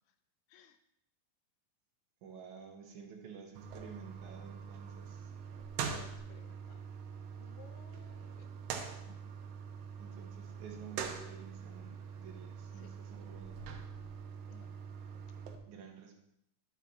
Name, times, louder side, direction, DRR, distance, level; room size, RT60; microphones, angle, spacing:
voice 1, 2.2-5.3 10.0-13.8 15.7-16.2, right 6 dB, 65° right, 2 dB, 2.1 m, -51 dB
sound 1, 3.6-15.6, right 7 dB, 80° right, 2.9 m, -44 dB
voice 2, 5.8-6.8 7.4-8.5 9.1-9.2 12.7-12.9 14.5-14.7, left 9 dB, 85° left, 8 dB, 2.5 m, -57 dB
10.5 x 6.1 x 4.2 m, 0.76 s
omnidirectional pair, 4.7 m